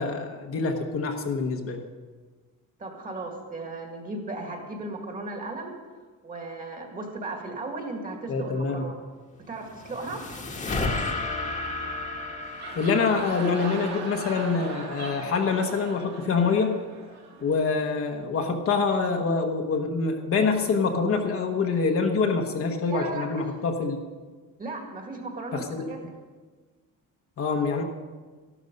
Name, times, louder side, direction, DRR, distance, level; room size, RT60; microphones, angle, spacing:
voice 1, 0.0-1.8 8.3-8.9 12.7-16.7 17.4-24.0 25.5-25.9 27.4-27.8, left 4 dB, 45° left, 3 dB, 1.2 m, -25 dB
voice 2, 2.8-5.7 6.2-8.9 9.5-10.2 22.9-23.5 24.6-26.0, right 2 dB, 25° right, 2 dB, 2.0 m, -36 dB
sound 1, 9.4-14.8, left 2 dB, 25° left, 1.4 m, -33 dB
sound 2, 12.3-17.9, right 4 dB, 55° right, 2.2 m, -39 dB
13.5 x 12.0 x 5.3 m, 1.4 s
cardioid pair, 180°, 32 cm